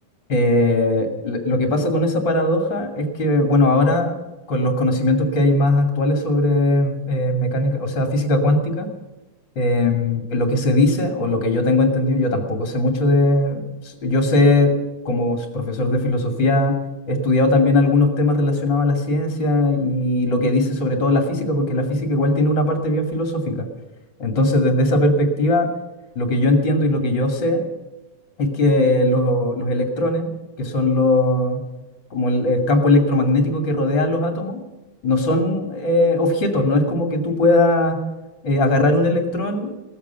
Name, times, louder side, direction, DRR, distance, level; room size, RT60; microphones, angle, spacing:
voice 1, 0.3-4.2 4.5-8.9 9.6-14.8 15.0-16.8 17.1-23.6 24.2-25.7 26.2-27.6 28.4-30.3 30.6-31.6 32.1-34.6 35.0-38.0 38.4-39.7, left 2 dB, 35° left, 3 dB, 2.8 m, -19 dB
17.5 x 14.5 x 5.7 m, 1.1 s
omnidirectional pair, 3.7 m